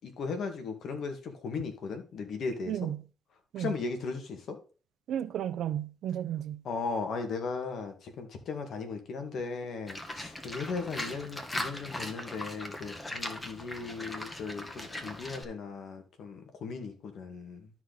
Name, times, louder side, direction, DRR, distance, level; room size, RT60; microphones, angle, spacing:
voice 1, 0.0-2.8 3.6-4.6 6.6-17.7, left 4 dB, 65° left, 2.1 m, -37 dB
voice 2, 2.7-3.0 3.5-3.8 5.1-6.6, right 10 dB, 75° right, 0.8 m, -33 dB
Livestock farm animals working animals, 9.9-15.4, left 1 dB, 15° left, 1.7 m, -39 dB
12.5 x 4.6 x 4.0 m
cardioid pair, 90°, 0 cm